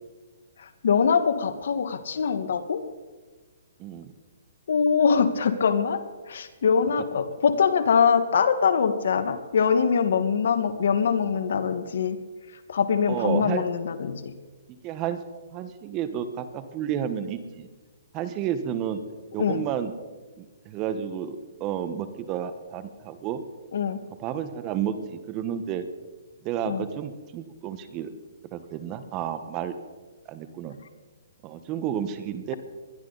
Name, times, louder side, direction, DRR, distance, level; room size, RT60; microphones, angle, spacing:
voice 1, 0.8-2.8 4.7-6.0 6.3-12.2 12.7-14.3 19.4-19.6 23.7-24.0 26.7-26.8, left 6 dB, 70° left, 10 dB, 1.6 m, -23 dB
voice 2, 3.8-4.1 13.1-13.6 14.8-15.2 15.5-17.7 18.1-19.0 19.3-19.9 20.4-23.4 24.2-25.8 26.4-28.1 28.5-29.7 30.3-30.8 31.4-32.5, right 9 dB, 25° right, 11 dB, 1.2 m, -31 dB
20.5 x 12.5 x 4.1 m, 1.3 s
hypercardioid pair, 150°, 0 cm